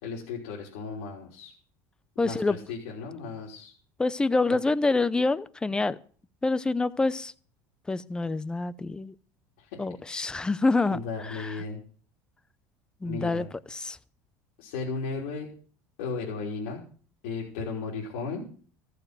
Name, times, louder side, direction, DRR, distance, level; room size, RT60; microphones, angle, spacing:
voice 1, 0.0-1.5 2.2-3.7 4.5-4.6 9.6-10.0 10.9-11.8 13.0-13.5 14.6-15.5 16.0-16.8 17.2-18.5, left 4 dB, 90° left, 3.5 m, -35 dB
voice 2, 2.2-2.6 4.0-6.0 6.4-7.3 7.9-9.1 9.8-11.0 11.3-11.5 13.0-14.0, left 3 dB, 10° left, 0.6 m, -26 dB
14.5 x 6.8 x 7.7 m
cardioid pair, 125°, 7 cm